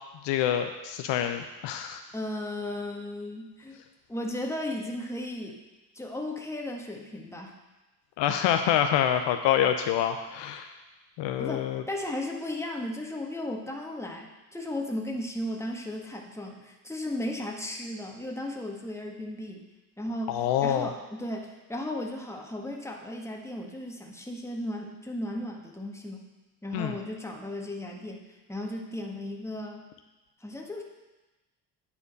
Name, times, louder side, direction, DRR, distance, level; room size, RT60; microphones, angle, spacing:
voice 1, 0.2-2.0 8.2-10.7 11.2-11.8 20.3-20.9 26.7-26.9, left 10 dB, 60° left, 6 dB, 0.7 m, -26 dB
voice 2, 2.1-3.8 4.1-5.6 6.0-7.6 11.4-19.6 20.0-26.3 26.6-29.9 30.4-30.8, left 1 dB, 5° left, 0 dB, 1.6 m, -35 dB
9.6 x 4.3 x 6.8 m, 1.1 s
hypercardioid pair, 55°, 49 cm